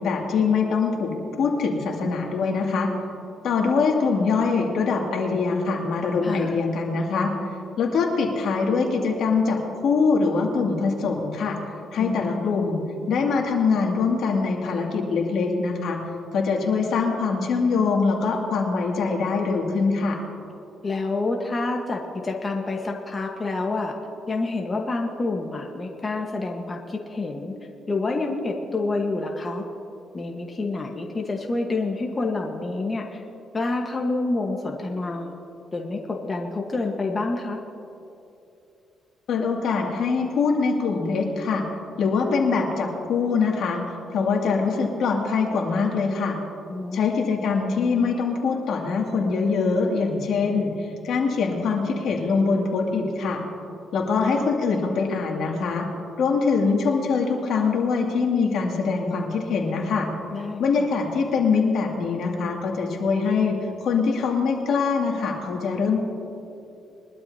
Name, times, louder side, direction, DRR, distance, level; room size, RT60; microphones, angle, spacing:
voice 1, 0.0-2.9 3.4-7.3 7.8-11.6 11.9-12.8 13.1-16.0 16.3-20.2 39.3-41.6 42.0-43.8 44.1-46.4 46.9-53.4 53.9-55.9 56.2-60.1 60.6-63.6 63.8-66.0, left 4 dB, 70° left, 0 dB, 2.4 m, -23 dB
voice 2, 6.2-6.6 12.0-12.5 20.8-23.9 24.3-27.5 27.9-29.6 30.1-33.2 33.5-35.3 35.7-37.6 46.7-47.2 60.3-60.6, left 3 dB, 30° left, 1 dB, 1.4 m, -28 dB
22.5 x 12.5 x 2.9 m, 2.9 s
cardioid pair, 90°, 0 cm